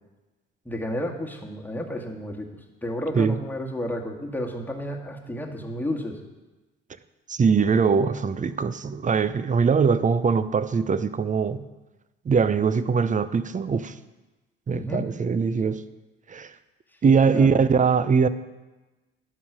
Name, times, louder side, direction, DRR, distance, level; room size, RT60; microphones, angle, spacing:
voice 1, 0.7-2.5 2.8-6.2 14.7-15.0 17.0-17.6, equal, 5° left, 0 dB, 2.0 m, -31 dB
voice 2, 7.3-11.6 12.2-14.0 14.7-15.8 16.3-16.5 17.0-18.3, right 5 dB, 25° right, 14 dB, 0.7 m, -22 dB
11.0 x 5.6 x 6.3 m, 1.1 s
hypercardioid pair, 55°, 29 cm